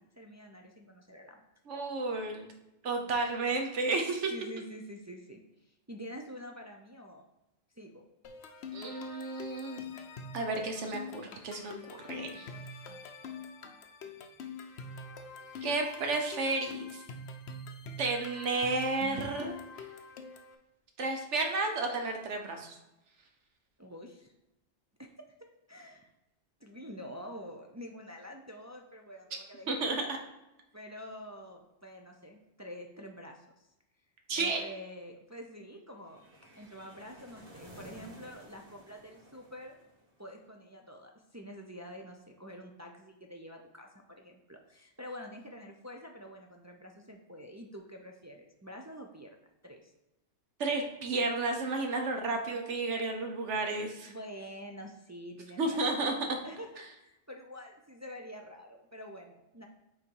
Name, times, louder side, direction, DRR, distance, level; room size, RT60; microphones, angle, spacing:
voice 1, 0.2-1.4 4.3-5.4 5.9-7.2 7.8-8.0 23.8-24.3 25.0-25.1 25.7-26.1 26.6-30.1 30.7-33.4 34.4-36.3 36.6-39.8 40.2-49.4 49.6-49.9 54.1-55.8 56.4-59.7, equal, 25° right, 1 dB, 0.3 m, -47 dB
voice 2, 1.7-2.5 2.8-4.3 8.7-9.8 10.3-11.7 12.0-12.5 15.6-17.0 18.0-19.5 21.0-22.7 29.7-30.2 34.3-34.6 50.6-54.1 55.6-56.1, right 3 dB, 75° right, 4 dB, 1.3 m, -32 dB
sound 1, 8.2-20.5, left 3 dB, 70° left, 0.9 m, -45 dB
sound 2, 36.0-40.3, equal, 50° right, 2.5 m, -54 dB
5.8 x 4.0 x 4.6 m, 0.95 s
omnidirectional pair, 1.2 m